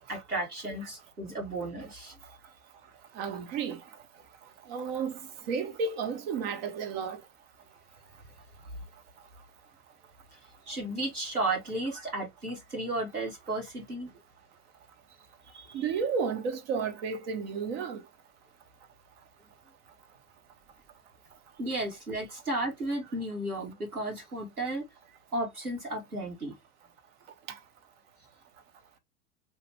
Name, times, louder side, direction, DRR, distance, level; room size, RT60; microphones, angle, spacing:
voice 1, 0.1-2.1 10.7-14.1 15.5-15.8 21.6-24.9 25.3-26.6, right 2 dB, 85° right, 1.5 m, -34 dB
voice 2, 3.1-3.8 4.7-7.2 15.7-18.0 27.5-27.6, right 5 dB, 40° right, 0.8 m, -32 dB
3.1 x 2.4 x 3.2 m
figure-of-eight pair, 90°, 44 cm